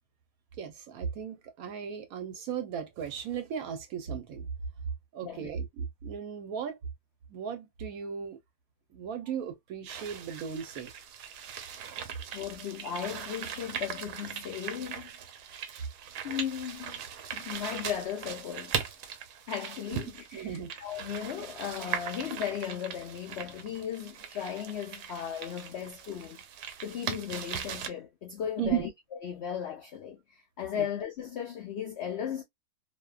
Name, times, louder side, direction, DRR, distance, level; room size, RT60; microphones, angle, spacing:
voice 1, 0.6-4.5 5.1-6.8 7.3-8.4 8.9-10.9 19.9-20.0 20.3-20.7 28.6-28.9 30.8-30.9, right 8 dB, 70° right, 1.0 m, -36 dB
sound 1, 9.9-27.9, right 8 dB, 90° right, 1.2 m, -40 dB
voice 2, 12.3-15.1 16.2-18.8 19.5-26.4 26.8-32.4, left 9 dB, 85° left, 0.5 m, -36 dB
2.6 x 2.2 x 2.2 m
omnidirectional pair, 1.7 m